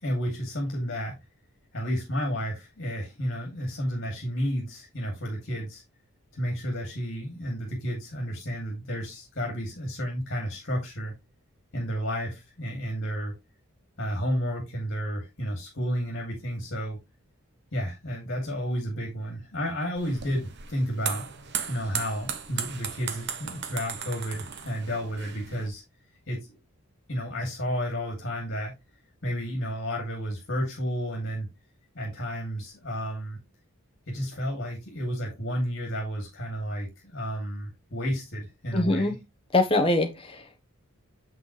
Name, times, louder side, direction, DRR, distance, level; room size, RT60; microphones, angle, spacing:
voice 1, 0.0-1.1 1.7-5.8 6.3-11.1 11.7-13.3 14.0-17.0 17.7-21.2 21.7-25.8 26.3-26.6 27.1-28.7 29.2-31.5 31.9-33.4 34.1-39.1, equal, 50° left, 2.7 m, -31 dB
sound 1, 20.0-25.7, right 7 dB, 50° right, 1.0 m, -36 dB
voice 2, 38.7-39.1 39.5-40.6, left 2 dB, 25° left, 1.1 m, -24 dB
7.5 x 6.1 x 3.2 m
head